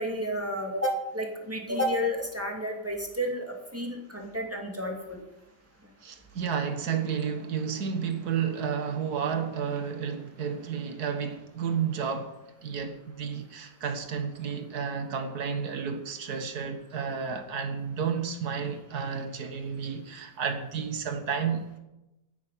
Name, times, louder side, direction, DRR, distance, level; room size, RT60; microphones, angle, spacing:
voice 1, 0.0-3.4 3.7-5.2, equal, 5° right, 2.2 m, -31 dB
voice 2, 6.0-12.3 12.6-21.8, right 6 dB, 55° right, 1.9 m, -31 dB
9.7 x 8.9 x 10.0 m
omnidirectional pair, 2.1 m